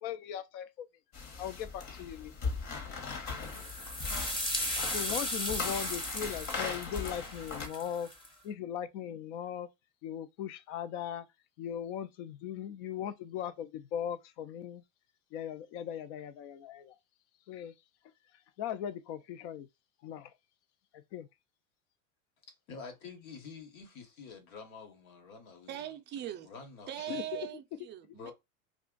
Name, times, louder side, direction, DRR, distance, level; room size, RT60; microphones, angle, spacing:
voice 1, 0.0-0.9 1.4-2.5 4.9-8.1 8.4-9.7 10.0-11.3 11.6-14.8 15.3-17.0 17.5-17.7 18.6-19.7 20.0-20.3 20.9-21.3 27.1-27.5, left 9 dB, 55° left, 0.6 m, -39 dB
sound 1, 1.1-7.7, left 4 dB, 40° left, 1.1 m, -39 dB
sound 2, 3.4-8.3, left 1 dB, 10° left, 0.7 m, -36 dB
voice 2, 22.7-25.8 26.4-27.3 28.1-28.3, left 5 dB, 75° left, 1.3 m, -48 dB
voice 3, 25.7-26.5 26.9-28.3, right 12 dB, 25° right, 0.4 m, -40 dB
2.5 x 2.4 x 3.7 m
hypercardioid pair, 110°, 43 cm